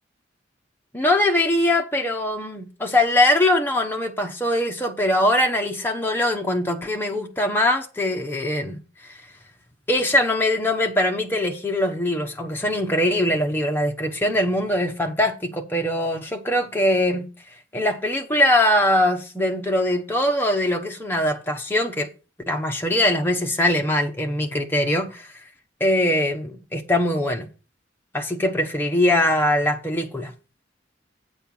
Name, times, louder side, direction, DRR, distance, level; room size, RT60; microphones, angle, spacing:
voice 1, 0.9-8.8 9.1-9.2 9.9-17.2 17.7-22.1 22.5-25.3 25.8-27.5 28.1-30.3, left 1 dB, 10° left, 1.0 m, -22 dB
8.5 x 4.5 x 7.0 m
head